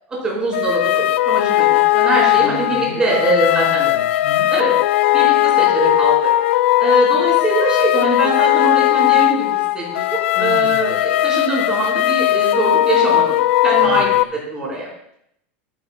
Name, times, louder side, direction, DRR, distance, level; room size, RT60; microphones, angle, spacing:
voice 1, 0.1-3.8 4.5-4.7 5.1-6.3 6.8-13.4 13.6-14.9, right 2 dB, 15° right, -5 dB, 4.1 m, -22 dB
sound 1, 0.5-14.2, left 15 dB, 85° left, 0.3 m, -17 dB
voice 2, 2.4-4.5 10.3-11.0 13.8-14.2, left 3 dB, 40° left, -2 dB, 5.2 m, -34 dB
15.0 x 13.0 x 2.2 m, 0.74 s
supercardioid pair, 175°, 7 cm